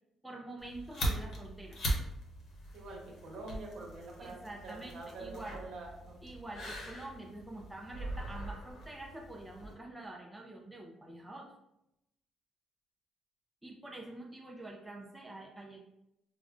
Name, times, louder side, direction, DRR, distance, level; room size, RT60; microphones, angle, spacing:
voice 1, 0.2-1.8 4.2-5.6 6.2-11.5 13.6-15.8, right 2 dB, 5° right, 0 dB, 0.4 m, -46 dB
sound 1, 0.6-9.7, right 1 dB, 55° left, 0.9 m, -40 dB
voice 2, 2.7-6.2, right 2 dB, 70° right, -2 dB, 1.0 m, -46 dB
4.9 x 2.1 x 2.4 m, 0.85 s
cardioid pair, 150°, 0 cm